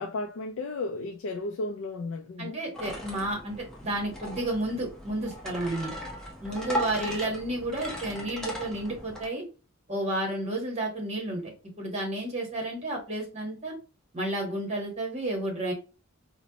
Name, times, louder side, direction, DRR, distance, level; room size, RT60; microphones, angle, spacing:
voice 1, 0.0-2.6 6.9-7.2, left 2 dB, 60° left, 0.3 m, -34 dB
voice 2, 2.4-5.9 6.4-9.4 9.9-13.7 14.1-15.7, right 1 dB, 30° right, 1.0 m, -31 dB
sound 1, 2.7-9.3, equal, 5° left, 0.6 m, -37 dB
4.1 x 2.0 x 2.7 m
head